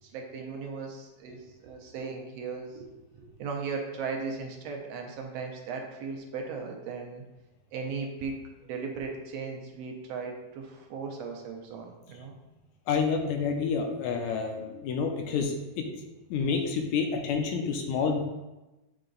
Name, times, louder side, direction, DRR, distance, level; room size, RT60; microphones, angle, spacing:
voice 1, 0.0-2.9 3.1-7.2 7.7-8.4 8.7-12.3, right 5 dB, 70° right, 2 dB, 1.6 m, -37 dB
voice 2, 12.9-15.8 16.3-18.2, left 5 dB, 80° left, 3 dB, 2.0 m, -28 dB
8.5 x 2.9 x 3.8 m, 1.0 s
omnidirectional pair, 3.4 m